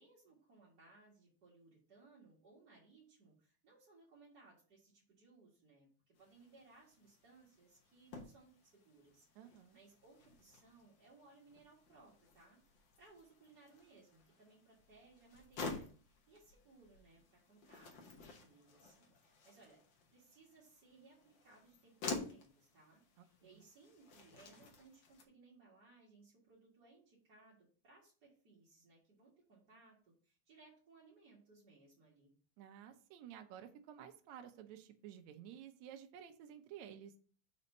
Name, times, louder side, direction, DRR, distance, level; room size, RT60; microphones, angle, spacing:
voice 1, 0.0-19.8 20.1-32.3, right 3 dB, 40° right, -7 dB, 2.0 m, -64 dB
sound 1, 6.2-25.3, left 4 dB, 60° left, 1.3 m, -51 dB
voice 2, 9.4-9.8 23.2-23.3 32.6-37.1, right 9 dB, 75° right, 6 dB, 2.0 m, -53 dB
5.4 x 4.1 x 5.3 m, 0.41 s
omnidirectional pair, 3.4 m